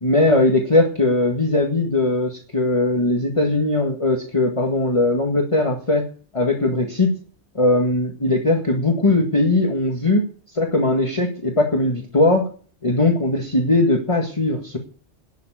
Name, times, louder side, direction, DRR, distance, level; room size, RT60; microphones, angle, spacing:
voice 1, 0.0-6.1 6.3-7.1 7.6-10.2 10.5-12.5 12.8-14.8, left 2 dB, 25° left, 1 dB, 1.9 m, -19 dB
11.0 x 7.5 x 9.2 m, 0.41 s
omnidirectional pair, 1.2 m